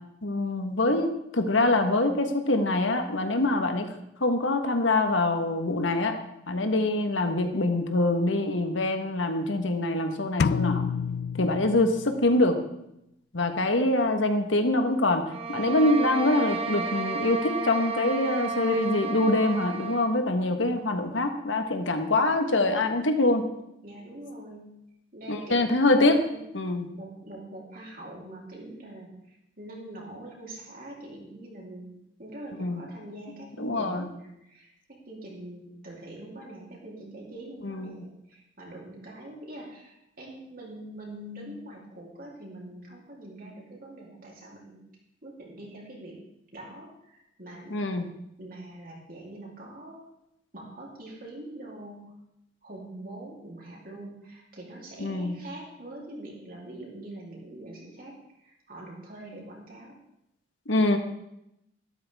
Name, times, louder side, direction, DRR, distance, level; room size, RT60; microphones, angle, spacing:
voice 1, 0.2-3.9 4.2-6.2 6.5-10.8 11.4-12.6 13.3-15.2 15.5-23.5 25.3-26.2 26.5-26.9 32.6-32.8 33.6-34.1 37.6-38.0 47.7-48.1 55.0-55.4 60.7-61.0, left 2 dB, 85° left, 6 dB, 1.4 m, -24 dB
sound 1, 10.4-12.3, left 5 dB, 55° left, 0.3 m, -28 dB
sound 2, 15.3-20.2, right 4 dB, 30° right, 0.9 m, -32 dB
voice 2, 23.8-24.8 25.1-26.4 26.9-31.9 32.2-44.8 45.2-46.2 46.5-47.8 48.4-50.1 50.5-52.2 52.6-60.0, right 1 dB, 50° right, -3 dB, 3.5 m, -44 dB
13.0 x 12.5 x 3.6 m, 0.83 s
head